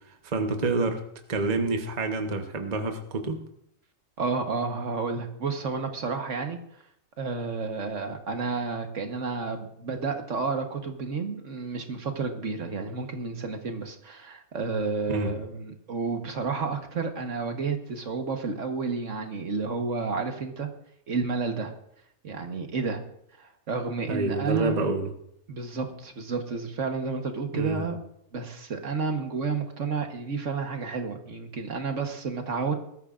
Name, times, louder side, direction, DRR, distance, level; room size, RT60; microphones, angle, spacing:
voice 1, 0.1-1.0 1.3-3.4 15.1-15.3 24.1-25.1 27.5-27.9, right 3 dB, 30° right, 5 dB, 1.0 m, -28 dB
voice 2, 4.2-6.6 7.2-20.7 21.1-21.7 22.2-23.0 23.4-24.9 25.5-28.0 28.3-32.7, right 4 dB, 55° right, 5 dB, 1.6 m, -31 dB
20.0 x 13.5 x 2.5 m, 0.73 s
omnidirectional pair, 1.5 m